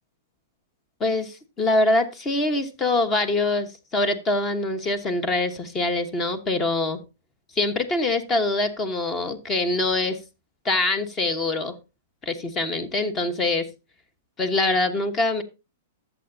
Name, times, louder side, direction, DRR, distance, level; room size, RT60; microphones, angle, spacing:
voice 1, 1.0-7.0 7.5-10.2 10.6-11.7 12.3-13.7 14.4-15.4, left 2 dB, 25° left, 11 dB, 1.2 m, -24 dB
13.5 x 7.0 x 2.7 m, 0.27 s
hypercardioid pair, 130°, 0 cm